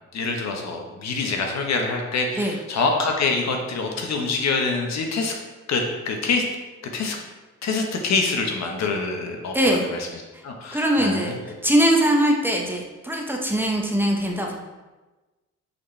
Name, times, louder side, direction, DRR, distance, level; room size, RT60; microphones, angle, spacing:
voice 1, 0.1-5.3 5.7-6.4 6.9-7.2 7.6-11.5, left 4 dB, 60° left, 2 dB, 1.2 m, -25 dB
voice 2, 9.5-9.9 10.7-11.4 11.6-14.6, right 1 dB, 5° right, 0 dB, 0.9 m, -21 dB
8.4 x 4.3 x 3.3 m, 1.2 s
cardioid pair, 90°, 30 cm